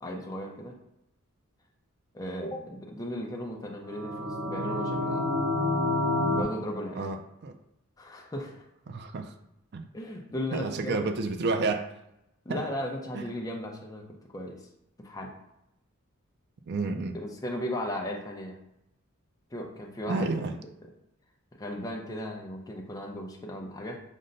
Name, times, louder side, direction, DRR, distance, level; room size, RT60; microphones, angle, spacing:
voice 1, 0.0-0.8 2.1-5.2 6.3-7.1 8.0-8.7 9.9-11.1 12.4-14.0 14.3-14.6 15.0-15.3 17.1-18.6 19.5-20.3 21.6-24.0, left 1 dB, 15° left, -1 dB, 0.5 m, -36 dB
sound 1, 3.9-6.4, left 1 dB, 90° right, 0.6 m, -28 dB
voice 2, 6.9-7.5 8.9-9.3 9.7-9.8 10.5-11.9 12.5-12.6 13.1-13.3 16.7-17.2 20.1-20.6, right 3 dB, 50° right, 7 dB, 0.4 m, -30 dB
5.3 x 2.1 x 3.8 m, 0.83 s
head